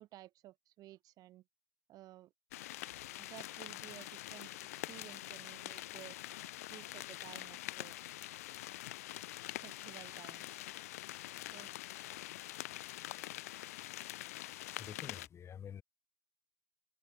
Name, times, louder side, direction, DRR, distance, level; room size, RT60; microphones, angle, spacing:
voice 1, 0.0-1.4 1.9-2.3 3.2-4.5 4.9-8.0 9.6-10.7 11.5-11.8 14.8-15.2, right 15 dB, 50° right, 2.0 m, -55 dB
sound 1, 2.5-15.3, left 16 dB, 80° left, 0.9 m, -45 dB
voice 2, 14.8-15.8, left 8 dB, 35° left, 1.0 m, -48 dB
open air
hypercardioid pair, 85°, 8 cm